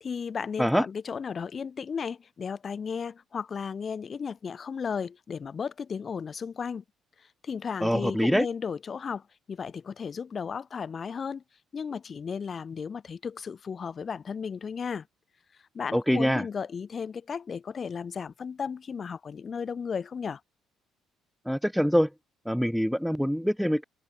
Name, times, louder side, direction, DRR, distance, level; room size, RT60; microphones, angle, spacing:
voice 1, 0.0-6.8 7.2-11.4 11.7-15.1 15.7-20.4, left 6 dB, 30° left, 1.2 m, -34 dB
voice 2, 7.8-8.5 15.9-16.5 21.5-22.1 22.5-23.8, equal, ahead, 0.4 m, -24 dB
cardioid pair, 150°, 0 cm